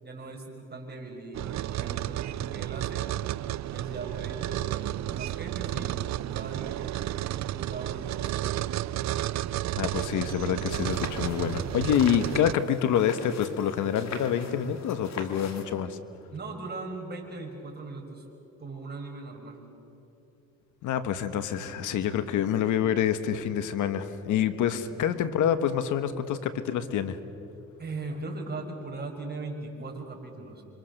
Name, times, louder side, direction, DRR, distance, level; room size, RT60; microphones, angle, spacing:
voice 1, 0.0-3.1 3.7-7.0 7.5-8.7 16.3-18.2 18.6-19.6 27.8-30.6, right 3 dB, 35° right, 2 dB, 5.6 m, -39 dB
sound 1, 1.3-12.5, right 14 dB, 65° right, 0.6 m, -32 dB
voice 2, 9.8-16.0 20.8-27.2, left 9 dB, 80° left, 11 dB, 1.4 m, -27 dB
sound 2, 10.7-15.7, left 5 dB, 60° left, 2.7 m, -41 dB
28.0 x 25.0 x 6.6 m, 2.9 s
cardioid pair, 90°, 30 cm